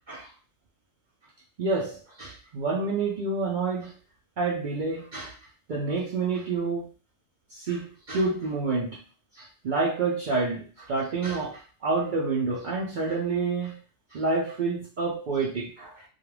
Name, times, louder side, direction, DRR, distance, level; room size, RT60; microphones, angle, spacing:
voice 1, 1.6-4.0 4.4-5.3 5.7-6.9 7.5-9.0 9.3-13.8 14.1-16.0, right 3 dB, 90° right, -3 dB, 0.4 m, -28 dB
2.3 x 2.2 x 3.1 m, 0.33 s
omnidirectional pair, 1.4 m